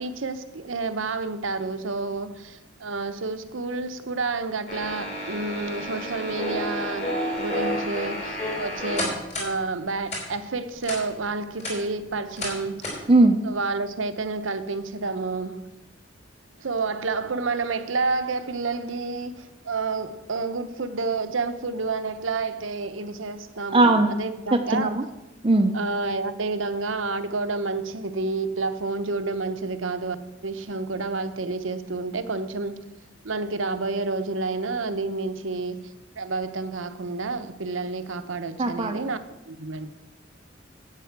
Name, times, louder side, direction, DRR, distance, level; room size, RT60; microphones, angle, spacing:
voice 1, 0.0-12.8 13.4-15.7 16.6-25.0 25.7-30.2 30.4-32.8 33.2-35.8 36.2-39.2 39.5-39.9, right 3 dB, 85° right, 10 dB, 0.9 m, -29 dB
sound 1, 4.7-9.5 10.1-10.2 10.8-11.0 11.4-11.7 12.4-12.5 12.8-13.0, equal, 35° left, 3.7 m, -30 dB
voice 2, 13.1-13.4 23.7-24.1 24.5-25.0 25.4-25.7 38.6-39.0, right 2 dB, 30° right, 6 dB, 0.6 m, -19 dB
10.5 x 8.3 x 5.9 m, 0.99 s
head